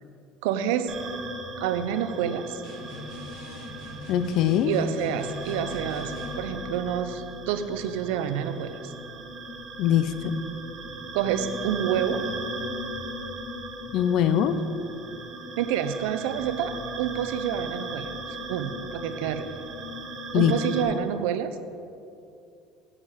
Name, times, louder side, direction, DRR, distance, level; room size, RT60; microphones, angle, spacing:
voice 1, 0.4-0.9 1.6-2.6 4.7-8.9 11.1-12.2 15.6-18.1 18.5-19.5 20.3-21.6, right 9 dB, 85° right, 10 dB, 0.6 m, -28 dB
sound 1, 0.9-20.8, right 1 dB, 30° right, 1.0 m, -37 dB
sound 2, 2.6-6.5, left 2 dB, 70° left, 2.2 m, -41 dB
voice 2, 4.1-4.7 9.8-10.4 13.9-14.6 20.3-20.5, left 10 dB, 50° left, 11 dB, 0.4 m, -22 dB
9.4 x 7.3 x 5.0 m, 2.6 s
cardioid pair, 170°, 0 cm